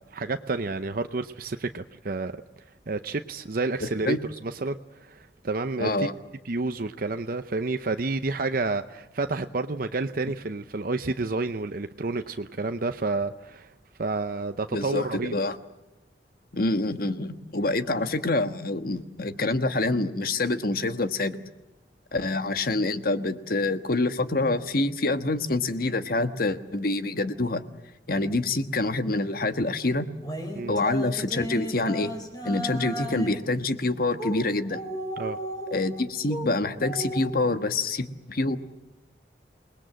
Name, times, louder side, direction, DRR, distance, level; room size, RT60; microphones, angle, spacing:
voice 1, 0.0-2.3 2.9-4.2 4.4-6.1 6.4-13.7 14.0-15.3 30.5-30.7 35.2-35.4, right 3 dB, 55° right, 8 dB, 0.7 m, -30 dB
voice 2, 3.8-4.2 5.8-6.1 14.7-15.6 16.5-21.4 22.1-27.6 28.1-30.1 30.7-32.1 32.4-34.8 35.7-38.6, left 2 dB, 55° left, 10 dB, 1.4 m, -26 dB
sound 1, 30.2-33.4 34.1-34.4 34.7-36.5 36.8-37.3, equal, 25° left, 4.4 m, -34 dB
28.0 x 20.0 x 7.7 m, 1.0 s
head